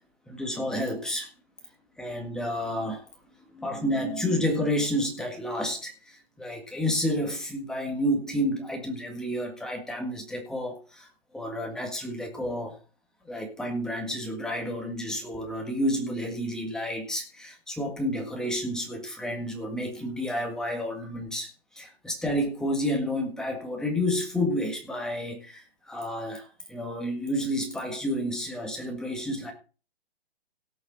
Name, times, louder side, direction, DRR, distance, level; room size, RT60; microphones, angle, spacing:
voice 1, 0.3-1.3 2.0-3.0 3.5-11.1 11.3-12.8 13.2-29.5, equal, ahead, 2 dB, 1.7 m, -30 dB
17.0 x 6.6 x 4.0 m, 0.36 s
hypercardioid pair, 160°, 32 cm